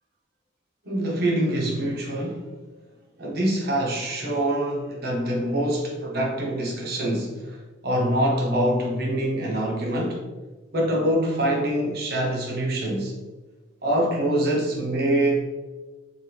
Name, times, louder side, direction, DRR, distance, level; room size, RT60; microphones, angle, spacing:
voice 1, 0.8-2.5 3.2-7.6 7.8-10.2 10.7-13.2 13.8-15.5, right 1 dB, 55° right, -1 dB, 0.8 m, -25 dB
3.4 x 2.6 x 2.9 m, 1.2 s
head